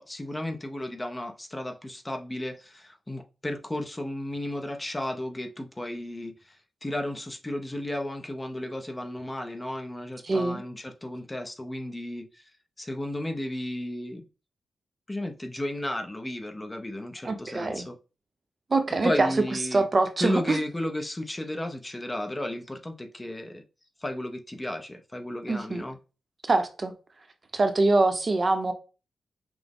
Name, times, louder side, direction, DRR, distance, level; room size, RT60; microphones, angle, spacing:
voice 1, 0.0-12.5 12.8-14.3 15.1-18.0 19.0-19.9 20.2-23.6 24.0-26.0, left 1 dB, 15° left, 0.5 m, -34 dB
voice 2, 10.2-10.6 17.2-17.8 18.7-19.3 19.7-20.6 25.5-25.8 26.5-26.9 27.5-28.7, right 2 dB, 35° right, 0.6 m, -24 dB
5.8 x 2.1 x 3.5 m
wide cardioid pair, 105°, 0 cm